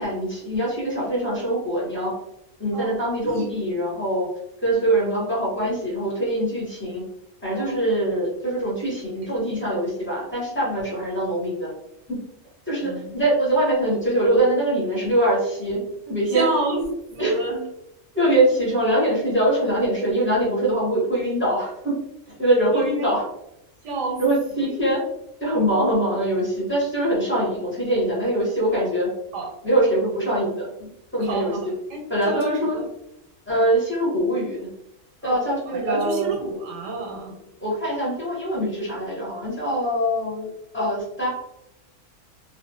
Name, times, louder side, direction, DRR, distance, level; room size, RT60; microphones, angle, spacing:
voice 1, 0.0-2.1 2.6-4.3 4.6-7.0 7.4-11.7 12.1-12.2 12.7-16.4 17.2-17.3 18.1-21.9 22.3-23.2 24.2-25.0 25.4-29.1 29.6-30.7 31.1-31.5 32.1-32.8 33.5-34.7 35.2-36.3 37.6-41.3, right 1 dB, 10° left, -7 dB, 0.9 m, -23 dB
voice 2, 3.2-3.6 7.5-7.8 9.2-9.3 12.8-13.1 16.3-17.7 22.7-23.2 23.8-24.2 24.5-24.7 29.3-29.5 31.2-32.9 35.2-35.4 35.7-37.4, right 2 dB, 90° right, 0 dB, 1.0 m, -29 dB
2.4 x 2.1 x 2.6 m, 0.83 s
omnidirectional pair, 1.3 m